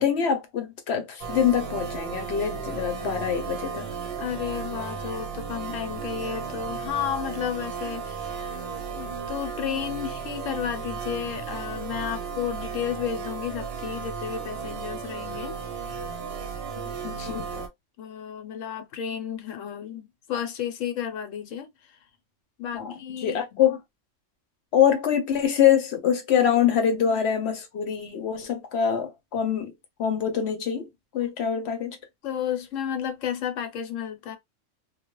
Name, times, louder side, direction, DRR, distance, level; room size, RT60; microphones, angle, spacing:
voice 1, 0.0-3.8 17.0-17.4 22.7-22.9 23.2-23.8 24.7-29.7 30.0-30.9 31.1-32.0, left 8 dB, 65° left, 0.8 m, -24 dB
sound 1, 1.2-17.7, right 6 dB, 60° right, 0.8 m, -34 dB
voice 2, 4.2-8.5 8.9-15.6 17.2-17.7 18.0-22.0 22.6-23.4 32.2-34.4, left 9 dB, 85° left, 1.0 m, -32 dB
2.3 x 2.1 x 2.9 m
omnidirectional pair, 1.3 m